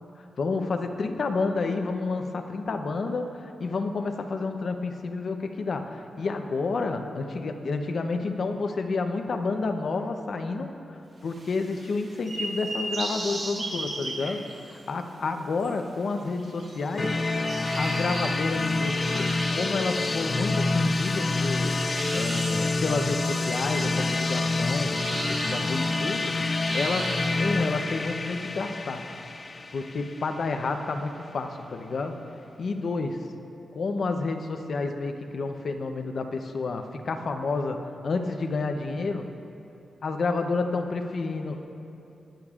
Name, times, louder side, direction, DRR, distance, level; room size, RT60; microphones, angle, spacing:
voice 1, 0.4-10.8 11.2-14.4 14.9-17.1 17.7-21.8 22.1-26.4 26.7-29.1 29.7-32.2 32.6-33.3 33.7-39.3 40.0-41.6, left 3 dB, 55° left, 5 dB, 0.7 m, -30 dB
sound 1, 11.3-14.9 15.6-15.7 16.4-21.5 21.9-27.8, right 2 dB, 55° right, 2.5 m, -37 dB
sound 2, 17.0-30.7, left 3 dB, 30° left, 0.4 m, -27 dB
20.5 x 9.8 x 2.5 m, 2.8 s
wide cardioid pair, 150°, 0 cm